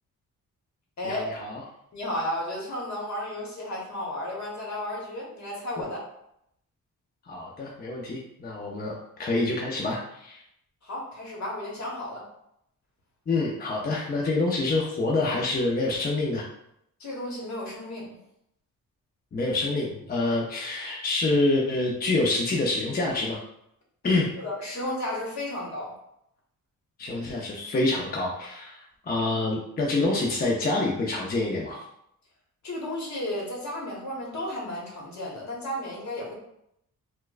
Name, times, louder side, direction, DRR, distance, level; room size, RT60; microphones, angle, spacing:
voice 1, 1.0-1.6 7.3-10.4 13.3-16.5 19.3-23.4 24.0-24.3 27.0-31.8, left 2 dB, 30° left, -2 dB, 0.5 m, -27 dB
voice 2, 1.9-6.0 10.8-12.3 17.0-18.2 24.4-25.9 32.6-36.3, left 1 dB, 55° left, -3 dB, 1.2 m, -33 dB
4.3 x 2.2 x 2.4 m, 0.77 s
cardioid pair, 110°, 34 cm